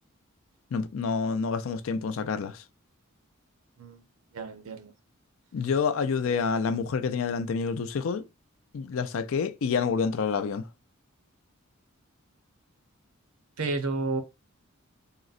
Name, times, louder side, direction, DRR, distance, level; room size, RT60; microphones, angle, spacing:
voice 1, 0.7-2.6 5.5-8.2 8.7-10.6, left 5 dB, 65° left, 0.4 m, -28 dB
voice 2, 4.3-4.9 13.6-14.2, right 3 dB, 85° right, 0.6 m, -31 dB
3.7 x 2.0 x 2.4 m
head